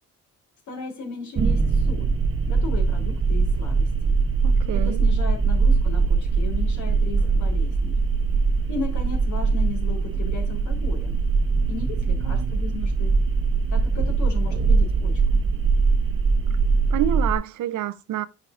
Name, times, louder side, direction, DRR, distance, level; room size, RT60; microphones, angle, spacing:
voice 1, 0.7-2.2 2.5-4.2 4.7-8.0 8.7-11.2 11.7-13.2 13.7-15.4, left 5 dB, 75° left, 3.2 m, -36 dB
sound 1, 1.4-17.3, right 4 dB, 45° right, 1.0 m, -22 dB
voice 2, 4.4-5.0 16.9-18.3, right 12 dB, 80° right, 0.7 m, -27 dB
10.5 x 4.8 x 2.5 m
cardioid pair, 90°, 30 cm